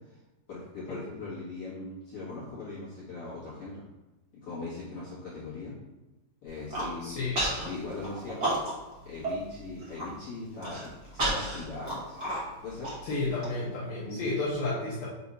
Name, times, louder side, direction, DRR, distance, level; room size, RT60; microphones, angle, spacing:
voice 1, 0.5-3.8 4.3-5.8 6.4-7.2 7.6-8.6 9.0-12.2 12.6-12.9 14.0-14.2, left 3 dB, 55° left, -9 dB, 1.6 m, -40 dB
Human voice, 6.5-6.9 7.3-7.7 8.0-8.9 9.2-9.3 9.7-10.1 10.6-13.5, right 1 dB, 85° right, 0.9 m, -31 dB
voice 2, 7.0-7.4 13.0-15.1, left 2 dB, 70° left, -6 dB, 2.3 m, -31 dB
6.9 x 2.8 x 5.2 m, 1.0 s
omnidirectional pair, 5.3 m